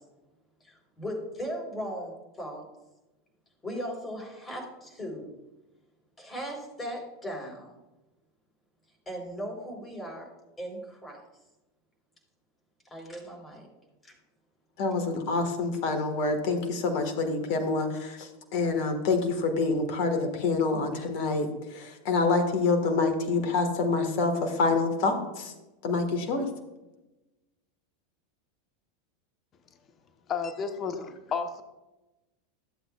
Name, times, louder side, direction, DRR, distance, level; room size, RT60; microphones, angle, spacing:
voice 1, 0.6-2.1 2.4-2.7 3.6-5.3 6.2-7.7 9.1-10.3 10.6-11.2 12.9-13.7 14.0-14.1, equal, 15° left, 0 dB, 3.6 m, -37 dB
voice 2, 14.8-21.5 21.7-25.5 25.8-26.5, left 3 dB, 50° left, 6 dB, 1.5 m, -27 dB
voice 3, 30.3-31.6, left 6 dB, 30° left, 8 dB, 0.9 m, -32 dB
14.5 x 7.8 x 2.3 m, 1.0 s
figure-of-eight pair, 85°, 0 cm